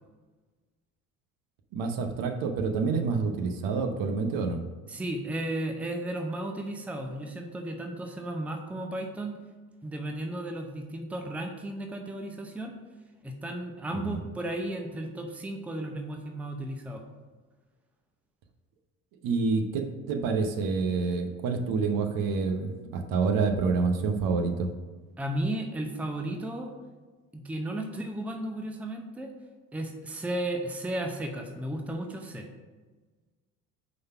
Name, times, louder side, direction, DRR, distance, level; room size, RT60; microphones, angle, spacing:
voice 1, 1.7-4.6 14.1-14.2 19.2-24.7, right 4 dB, 50° right, 5 dB, 0.9 m, -28 dB
voice 2, 4.9-9.4 9.8-12.7 13.2-17.0 25.2-26.7 27.3-29.3 29.7-32.5, right 1 dB, 5° right, 4 dB, 0.7 m, -34 dB
5.3 x 4.0 x 5.6 m, 1.3 s
hypercardioid pair, 65°, 43 cm